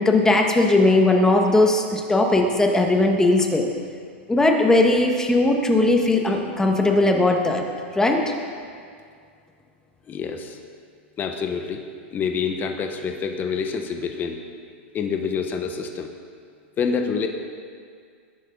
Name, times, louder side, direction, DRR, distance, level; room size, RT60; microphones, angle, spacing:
voice 1, 0.0-3.6 4.3-7.6 8.0-8.2, left 2 dB, 10° left, 2 dB, 1.8 m, -18 dB
voice 2, 10.1-10.6 11.2-11.8 12.1-14.4 14.9-16.1 16.8-17.3, left 6 dB, 30° left, 5 dB, 1.3 m, -27 dB
21.5 x 11.0 x 4.0 m, 2.1 s
hypercardioid pair, 115°, 7 cm